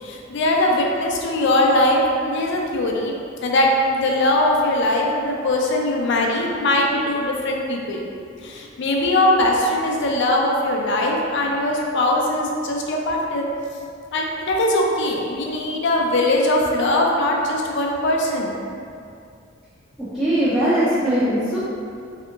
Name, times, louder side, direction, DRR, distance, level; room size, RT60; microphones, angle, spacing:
voice 1, 0.0-3.2 3.4-8.0 8.4-13.5 14.1-18.6, left 1 dB, 60° left, -1 dB, 0.4 m, -21 dB
voice 2, 20.1-21.6, right 1 dB, ahead, -13 dB, 0.4 m, -20 dB
3.3 x 2.8 x 2.4 m, 2.4 s
head